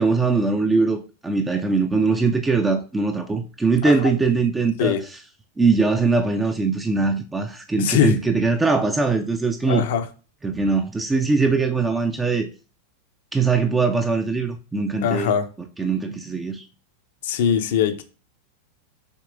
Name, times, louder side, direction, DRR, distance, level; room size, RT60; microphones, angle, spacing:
voice 1, 0.0-5.0 5.6-9.8 10.4-12.5 13.3-15.3 15.8-16.6, right 4 dB, 10° right, 0.5 m, -21 dB
voice 2, 7.7-8.2 9.7-10.1 15.0-15.5 17.2-18.0, left 8 dB, 55° left, 0.6 m, -21 dB
6.5 x 2.9 x 2.5 m
figure-of-eight pair, 90°, 0 cm